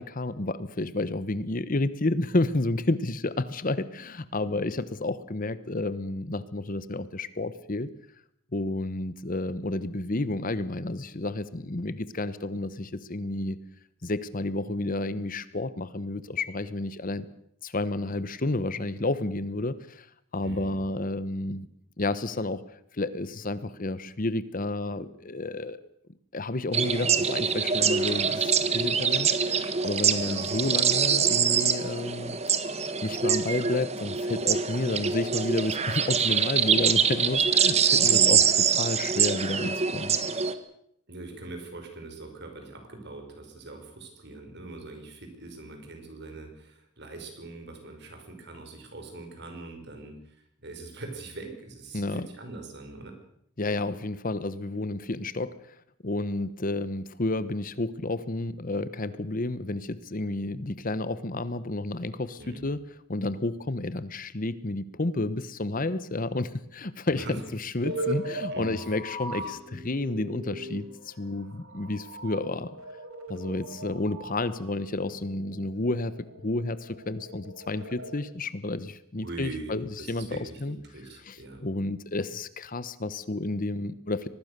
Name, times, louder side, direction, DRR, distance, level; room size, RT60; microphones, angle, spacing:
voice 1, 0.0-7.9 8.5-13.6 14.0-17.3 17.6-20.1 20.3-21.7 22.0-25.8 26.3-32.4 33.0-38.4 38.8-40.2 51.9-52.3 53.6-55.7 56.0-62.8 63.1-72.8 73.3-80.8 81.2-84.3, left 2 dB, 40° left, 15 dB, 1.0 m, -31 dB
voice 2, 20.4-20.8 30.2-30.4 38.0-38.4 41.1-53.2 62.4-62.6 67.1-67.4 68.5-68.8 69.3-69.5 79.2-81.6, right 2 dB, 55° right, 5 dB, 5.7 m, -42 dB
sound 1, 26.7-40.5, right 7 dB, 30° right, 1.4 m, -24 dB
sound 2, 67.8-78.2, right 1 dB, 75° right, 4.1 m, -39 dB
24.5 x 20.0 x 6.7 m, 0.71 s
head